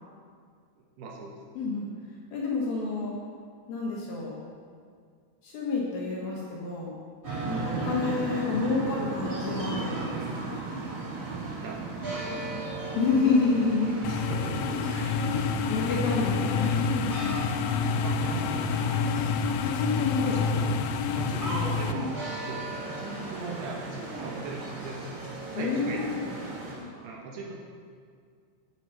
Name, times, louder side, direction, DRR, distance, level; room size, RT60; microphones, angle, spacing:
voice 1, 0.8-1.4 7.5-7.7 11.6-12.7 14.1-15.1 17.9-18.8 20.2-20.7 21.1-25.1 25.5-26.1 27.0-27.5, right 3 dB, 70° right, -2 dB, 3.0 m, -39 dB
voice 2, 1.6-1.9 2.3-3.1 3.7-4.3 5.4-6.9 7.5-10.5 13.0-13.9 14.7-14.8 15.2-17.3 19.6-20.7 21.9-22.1 25.6-26.3 26.7-27.1, left 4 dB, 65° left, -4 dB, 2.8 m, -29 dB
sound 1, 7.2-26.7, right 3 dB, 25° right, 1.9 m, -36 dB
sound 2, 14.0-21.9, left 5 dB, 90° left, 3.0 m, -28 dB
9.4 x 8.3 x 5.7 m, 2.1 s
omnidirectional pair, 5.4 m